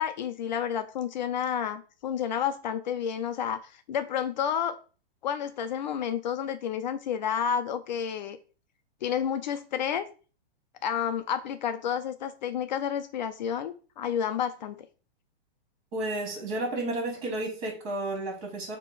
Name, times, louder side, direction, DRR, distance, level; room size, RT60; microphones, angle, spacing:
voice 1, 0.0-4.8 5.2-8.4 9.0-10.1 10.8-14.9, left 8 dB, 45° left, 10 dB, 0.6 m, -30 dB
voice 2, 15.9-18.8, right 2 dB, 35° right, 1 dB, 3.1 m, -32 dB
7.2 x 3.0 x 5.4 m, 0.37 s
hypercardioid pair, 165°, 30 cm